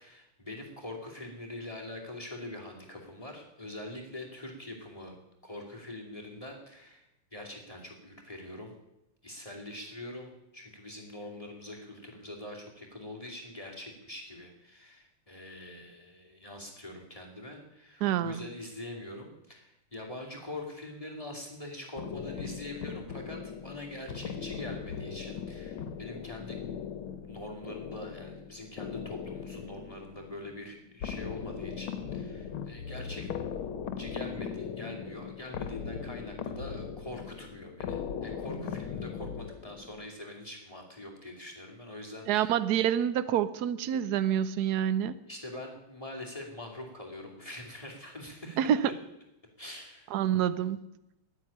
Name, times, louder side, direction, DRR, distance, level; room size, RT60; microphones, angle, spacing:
voice 1, 0.0-5.2 5.4-8.7 9.2-26.6 27.3-33.3 34.0-42.5 45.3-48.6 49.6-50.2, left 1 dB, 15° left, 2 dB, 2.4 m, -44 dB
voice 2, 18.0-18.4 42.3-45.2 48.6-48.9 50.1-50.9, right 10 dB, 90° right, 15 dB, 0.8 m, -27 dB
sound 1, 22.0-40.1, left 7 dB, 75° left, 1.7 m, -39 dB
9.7 x 9.7 x 10.0 m, 0.88 s
omnidirectional pair, 2.4 m